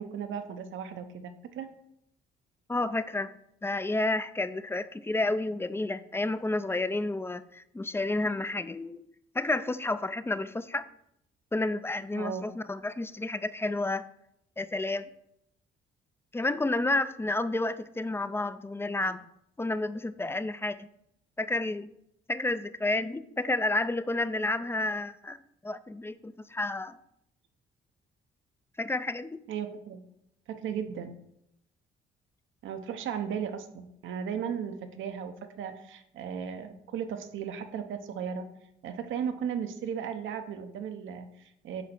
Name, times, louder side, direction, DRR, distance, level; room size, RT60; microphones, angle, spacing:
voice 1, 0.0-1.7 12.1-12.4 29.5-30.0 30.5-31.1 32.6-38.5 38.8-41.8, right 7 dB, 75° right, 8 dB, 0.8 m, -36 dB
voice 2, 2.7-3.3 3.6-9.0 9.3-10.8 11.5-14.1 14.6-15.0 16.3-19.2 19.6-20.9 21.4-21.9 22.3-27.0 28.8-29.4, left 2 dB, 10° left, 14 dB, 0.4 m, -30 dB
8.2 x 3.3 x 6.0 m, 0.78 s
cardioid pair, 90°, 20 cm